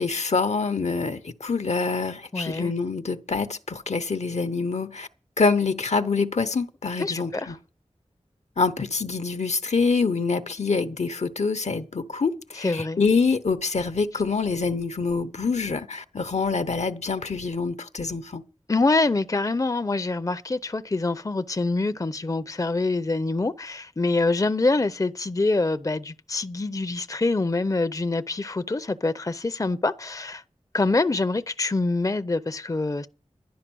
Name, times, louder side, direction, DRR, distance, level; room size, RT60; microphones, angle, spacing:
voice 1, 0.0-5.1 5.4-7.6 8.6-18.4, left 4 dB, 70° left, 0.8 m, -25 dB
voice 2, 2.3-2.7 7.0-7.5 12.6-13.0 18.7-30.4 30.7-33.1, left 3 dB, 30° left, 0.6 m, -25 dB
11.5 x 10.5 x 6.2 m
wide cardioid pair, 45°, 12 cm